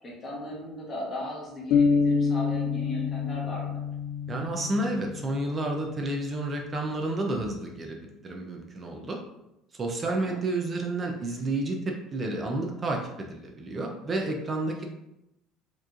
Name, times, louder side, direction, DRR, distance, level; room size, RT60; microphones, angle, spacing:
voice 1, 0.0-3.8 10.0-10.4, left 1 dB, 25° left, -4 dB, 1.2 m, -37 dB
sound 1, 1.7-5.5, left 5 dB, 55° left, 0.3 m, -26 dB
voice 2, 4.3-9.2 9.7-14.9, right 2 dB, 20° right, 1 dB, 0.4 m, -30 dB
4.6 x 3.0 x 2.4 m, 0.88 s
cardioid pair, 160°, 0 cm